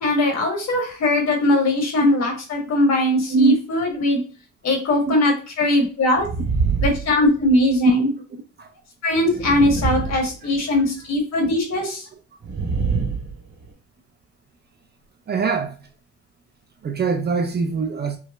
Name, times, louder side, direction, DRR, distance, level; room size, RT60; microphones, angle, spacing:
voice 1, 0.0-4.2 4.6-6.3 6.8-8.1 9.0-12.1, left 1 dB, 60° left, 1.3 m, -20 dB
sound 1, 6.2-7.8 9.2-10.9 12.4-13.7, right 5 dB, 70° right, 1.5 m, -25 dB
voice 2, 8.3-8.7 10.1-10.3 15.3-15.7 16.8-18.2, right 4 dB, 35° right, 0.5 m, -22 dB
4.6 x 2.1 x 2.4 m
cardioid pair, 90°, 30 cm